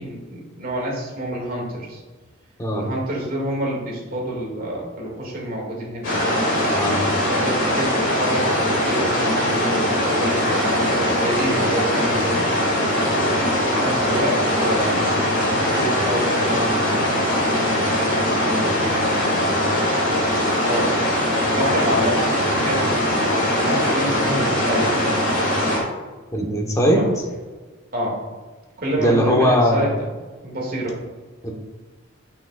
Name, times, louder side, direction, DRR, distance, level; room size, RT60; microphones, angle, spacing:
voice 1, 0.0-2.0 2.7-6.2 7.3-12.4 13.5-15.1 15.4-17.3 17.6-19.0 20.7-20.9 21.3-23.0 23.4-24.9 26.9-27.1 27.5-27.6 27.9-28.2 28.8-30.1 30.4-31.0, right 1 dB, 45° right, -2 dB, 2.0 m, -28 dB
sound 1, 6.0-25.8, left 1 dB, 60° left, 2.1 m, -21 dB
voice 2, 26.3-27.0 29.0-29.8 31.4-31.5, equal, 15° left, 0 dB, 1.0 m, -19 dB
8.6 x 5.8 x 2.3 m, 1.3 s
head